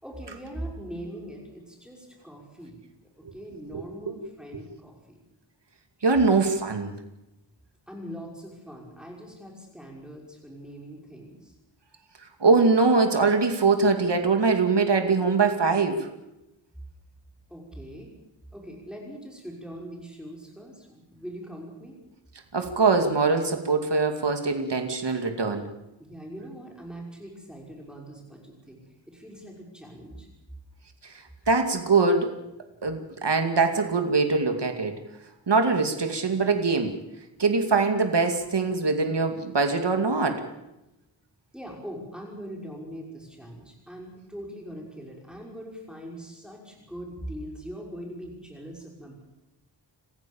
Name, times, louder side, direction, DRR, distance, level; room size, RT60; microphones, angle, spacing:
voice 1, 0.0-2.8 3.3-5.2 7.9-11.6 17.5-18.1 18.5-22.0 26.0-28.8 29.0-30.3 41.5-49.2, equal, ahead, -1 dB, 5.8 m, -41 dB
voice 2, 6.0-6.9 12.4-16.1 22.5-25.7 31.1-31.2 31.5-32.3 32.8-34.9 35.5-37.0 37.4-40.4, right 4 dB, 65° right, 5 dB, 2.5 m, -22 dB
28.0 x 15.0 x 7.1 m, 0.93 s
wide cardioid pair, 85°, 44 cm